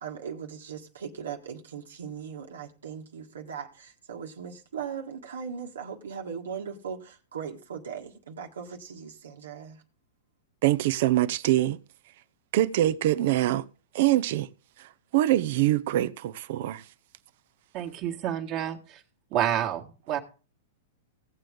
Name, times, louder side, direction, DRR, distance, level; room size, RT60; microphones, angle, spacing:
voice 1, 0.0-9.8, right 7 dB, 85° right, 1.7 m, -39 dB
voice 2, 10.6-11.8 12.5-13.7 13.9-14.5 14.8-16.8, right 14 dB, 60° right, 0.8 m, -24 dB
voice 3, 17.7-19.0 19.3-20.2, right 10 dB, 40° right, 1.8 m, -29 dB
17.0 x 7.7 x 3.7 m
hypercardioid pair, 115°, 0 cm